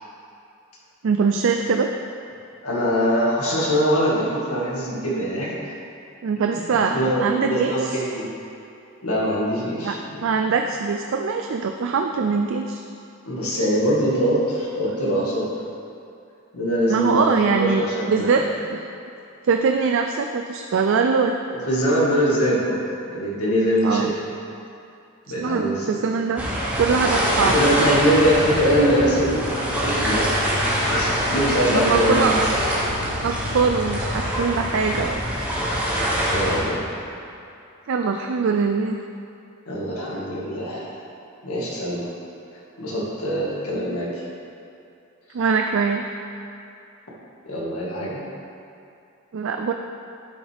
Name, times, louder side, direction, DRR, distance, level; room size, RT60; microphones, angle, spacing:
voice 1, 1.0-1.9 6.2-7.9 9.8-9.9 10.2-12.8 16.9-17.8 18.1-18.4 18.7-18.8 19.4-21.3 23.8-24.1 25.4-26.4 26.8-27.6 31.7-32.5 33.2-35.2 37.9-39.0 45.3-46.0 49.3-49.7, right 5 dB, 60° right, 4 dB, 0.4 m, -22 dB
voice 2, 2.6-5.6 6.7-8.3 9.0-10.2 13.3-15.5 16.5-18.5 21.5-24.1 25.3-26.0 27.3-30.4 30.9-32.4 36.3-36.8 39.7-41.0 41.4-42.1 42.8-44.1 47.4-48.2, equal, 90° left, -5 dB, 2.0 m, -23 dB
sound 1, 26.4-36.6, equal, 5° right, 1.3 m, -24 dB
11.5 x 6.2 x 3.5 m, 2.6 s
head